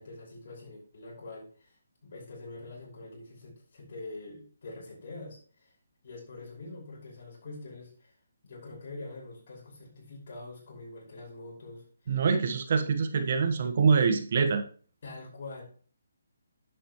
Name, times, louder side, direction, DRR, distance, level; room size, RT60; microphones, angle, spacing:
voice 1, 0.0-1.7 2.0-5.7 6.0-8.1 8.4-12.2 15.0-15.6, left 2 dB, 55° left, -2 dB, 5.5 m, -45 dB
voice 2, 12.1-14.6, right 5 dB, 50° right, 7 dB, 1.3 m, -25 dB
10.0 x 8.0 x 3.2 m, 0.42 s
hypercardioid pair, 155°, 0 cm